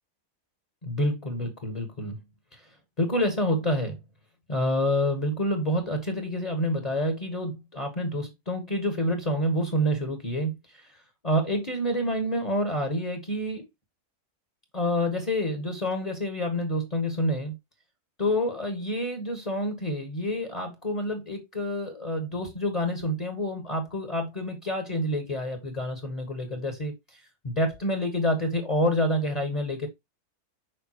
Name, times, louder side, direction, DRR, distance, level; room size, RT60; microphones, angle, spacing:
voice 1, 0.8-2.2 2.5-2.7 3.0-4.0 4.5-11.0 11.2-13.7 14.7-17.6 18.2-29.9, equal, 25° left, 1.3 m, -28 dB
6.8 x 5.2 x 2.9 m
omnidirectional pair, 1.6 m